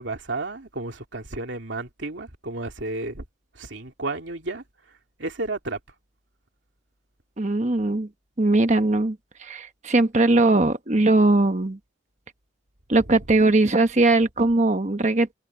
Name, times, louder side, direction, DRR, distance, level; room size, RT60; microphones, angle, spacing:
voice 1, 0.0-3.2 3.5-4.6 5.2-5.8, right 2 dB, 75° right, 2.9 m, -32 dB
voice 2, 7.4-8.1 8.4-11.8 12.9-15.3, right 2 dB, 40° right, 1.2 m, -20 dB
head